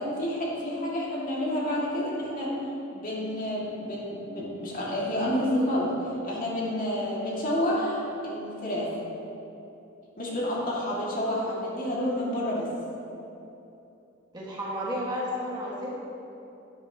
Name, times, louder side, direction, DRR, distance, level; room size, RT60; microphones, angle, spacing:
voice 1, 0.0-2.5 2.9-8.9 10.2-12.7, left 1 dB, 45° left, -6 dB, 2.1 m, -29 dB
voice 2, 14.3-15.9, equal, 20° right, -6 dB, 1.7 m, -32 dB
12.0 x 9.2 x 2.9 m, 2.8 s
head